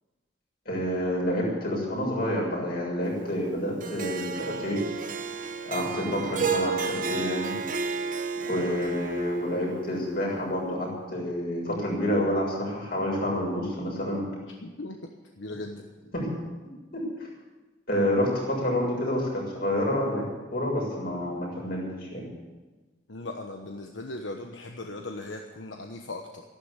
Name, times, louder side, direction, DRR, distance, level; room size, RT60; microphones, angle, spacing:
voice 1, 0.6-4.8 5.6-7.5 8.5-14.2 16.1-16.4 16.9-17.1 17.9-20.2 20.5-21.8 22.1-22.2, left 1 dB, 55° left, -2 dB, 6.7 m, -28 dB
Harp, 3.8-10.2, right 5 dB, 45° right, 1.2 m, -32 dB
voice 2, 14.4-15.0 15.4-15.8 23.1-26.4, left 2 dB, 85° left, 3 dB, 1.2 m, -38 dB
14.0 x 12.0 x 8.3 m, 1.3 s
head